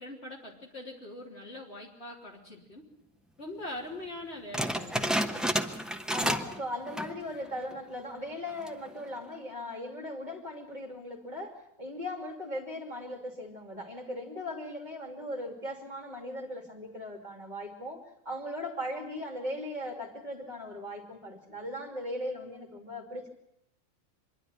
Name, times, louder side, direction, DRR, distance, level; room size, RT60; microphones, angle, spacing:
voice 1, 0.0-2.9 3.4-5.2, left 1 dB, 50° left, -1 dB, 3.8 m, -42 dB
sound 1, 4.5-6.6 6.9-7.2 7.7-7.8 8.5-8.9, equal, ahead, 0.9 m, -30 dB
voice 2, 6.1-23.3, left 1 dB, 35° right, 2 dB, 2.8 m, -38 dB
25.5 x 11.5 x 9.4 m, 0.77 s
omnidirectional pair, 1.4 m